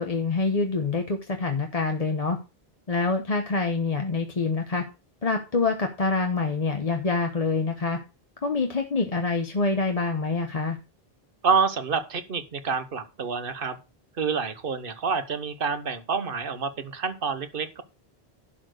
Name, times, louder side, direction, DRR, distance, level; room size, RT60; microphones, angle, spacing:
voice 1, 0.0-2.4 2.9-4.8 5.2-8.0 8.4-10.8, left 4 dB, 40° left, 4 dB, 1.0 m, -26 dB
voice 2, 11.4-13.8 14.2-17.8, right 5 dB, 60° right, 11 dB, 1.2 m, -27 dB
11.0 x 4.4 x 6.3 m, 0.30 s
omnidirectional pair, 1.0 m